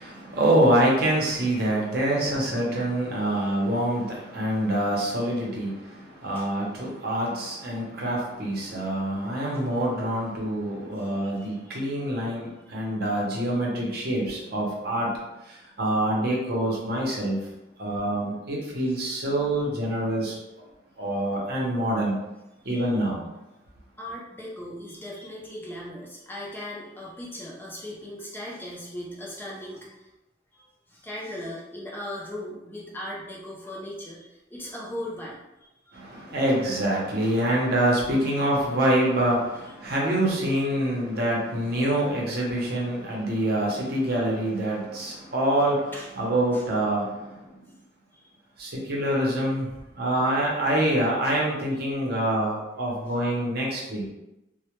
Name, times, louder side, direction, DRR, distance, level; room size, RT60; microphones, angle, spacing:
voice 1, 0.0-15.1 15.4-17.4 17.8-20.4 21.0-22.2 22.6-23.2 35.9-47.5 48.6-54.1, right 1 dB, 55° right, -3 dB, 0.6 m, -26 dB
voice 2, 11.2-11.9 12.6-13.0 18.9-19.2 22.6-22.9 24.0-30.1 30.5-36.3 38.1-38.6 39.6-40.0 45.2-45.3 45.9-46.1 46.5-46.6 48.1-48.3 52.9-53.0, left 1 dB, 10° left, -4 dB, 0.3 m, -39 dB
2.1 x 2.0 x 2.9 m, 0.96 s
head